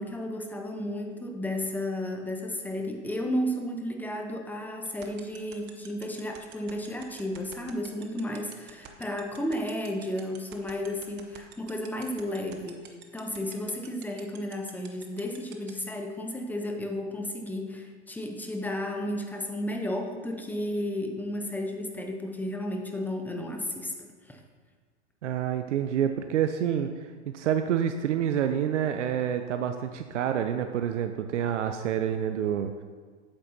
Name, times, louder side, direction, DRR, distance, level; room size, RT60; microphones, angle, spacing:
voice 1, 0.0-24.4, left 1 dB, 5° left, 3 dB, 0.7 m, -33 dB
sound 1, 4.9-15.7, right 13 dB, 30° right, 0.8 m, -46 dB
voice 2, 25.2-26.9 27.3-32.8, right 9 dB, 80° right, 7 dB, 0.5 m, -28 dB
8.6 x 7.5 x 2.7 m, 1.5 s
hypercardioid pair, 110°, 35 cm